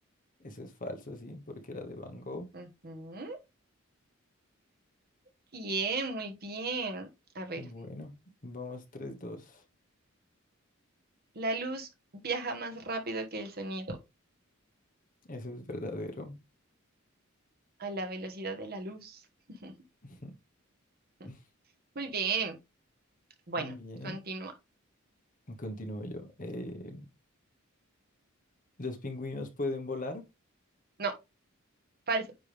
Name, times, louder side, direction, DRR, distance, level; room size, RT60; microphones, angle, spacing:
voice 1, 0.4-2.5 7.6-8.2 8.4-9.6 15.3-16.4 20.0-20.3 21.2-21.4 23.6-24.2 25.5-27.1 28.8-30.3, left 2 dB, 40° left, 1.2 m, -39 dB
voice 2, 2.5-3.4 5.5-7.1 7.3-7.7 11.3-11.9 12.1-14.0 17.8-19.2 19.5-19.7 21.9-22.6 23.5-23.7 24.0-24.5 31.0-31.1 32.1-32.3, right 3 dB, 45° right, 1.2 m, -35 dB
9.4 x 3.2 x 3.4 m
head